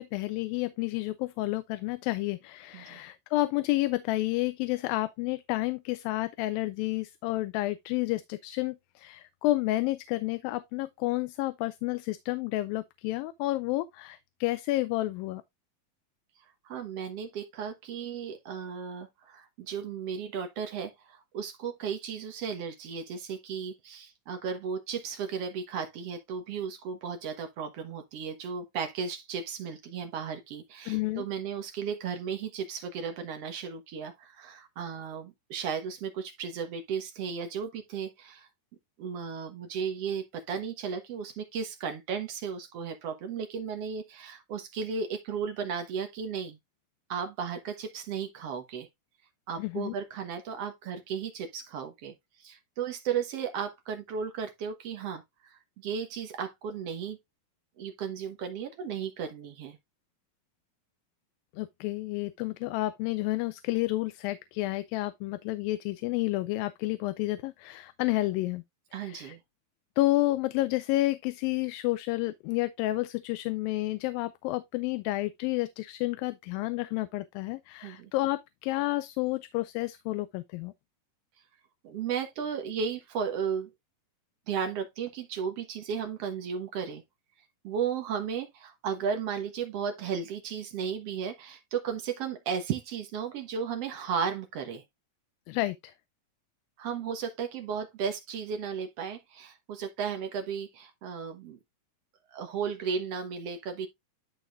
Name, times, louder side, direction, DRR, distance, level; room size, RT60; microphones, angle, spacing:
voice 1, 0.0-15.4 30.9-31.2 49.6-49.9 61.6-68.6 69.0-69.4 70.0-80.7 95.5-95.9, left 18 dB, 85° left, 2.3 m, -30 dB
voice 2, 16.7-38.5 39.0-46.6 47.1-48.9 49.5-52.1 52.4-57.2 57.8-59.8 68.9-69.4 77.8-78.1 81.8-83.7 84.5-87.0 87.6-94.8 96.8-101.6 102.3-103.9, right 7 dB, 60° right, 1.8 m, -35 dB
12.5 x 4.9 x 2.5 m
omnidirectional pair, 4.1 m